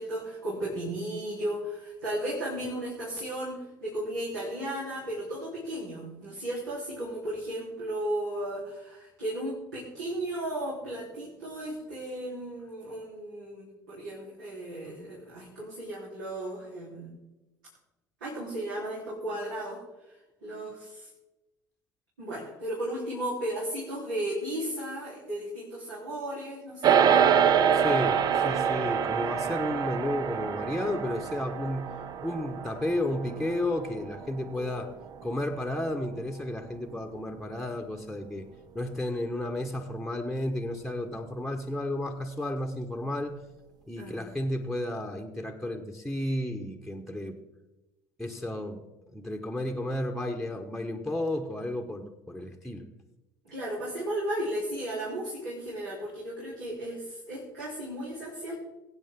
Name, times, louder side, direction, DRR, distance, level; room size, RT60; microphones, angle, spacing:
voice 1, 0.0-17.1 18.2-19.8 20.4-21.1 22.2-27.3 34.5-34.7 44.0-44.2 53.5-58.5, right 1 dB, 70° right, -7 dB, 3.8 m, -35 dB
sound 1, 26.8-36.3, right 8 dB, 40° right, 0.7 m, -26 dB
voice 2, 27.7-31.9 32.2-34.9 35.2-38.5 38.7-43.4 43.9-47.4 48.2-48.8 49.1-52.9, left 1 dB, ahead, 5 dB, 1.3 m, -32 dB
22.0 x 8.7 x 3.7 m, 1.0 s
figure-of-eight pair, 60°, 10 cm